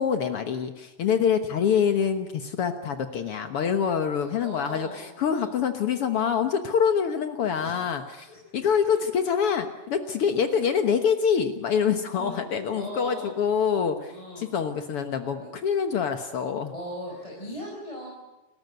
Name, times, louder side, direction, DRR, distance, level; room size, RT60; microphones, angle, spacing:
voice 1, 0.0-16.7, left 7 dB, 85° left, 8 dB, 1.2 m, -25 dB
voice 2, 4.0-5.5 7.6-7.8 8.3-8.4 8.9-9.0 10.3-10.5 12.2-12.4 12.7-13.3 14.1-14.5 15.4-15.5 16.7-18.1, left 1 dB, 10° left, -2 dB, 4.9 m, -39 dB
29.5 x 15.0 x 9.5 m, 1.0 s
omnidirectional pair, 4.6 m